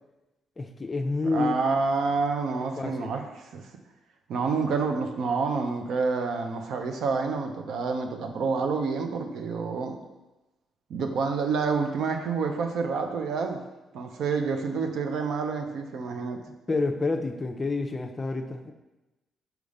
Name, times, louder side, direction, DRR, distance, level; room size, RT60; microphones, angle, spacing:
voice 1, 0.6-1.6 2.5-3.1 16.7-18.7, left 3 dB, 25° left, 6 dB, 0.6 m, -29 dB
voice 2, 1.3-3.7 4.3-10.0 10.9-13.6 13.9-16.4, right 4 dB, 70° right, 5 dB, 0.7 m, -28 dB
6.0 x 3.5 x 5.3 m, 1.0 s
cardioid pair, 90°, 0 cm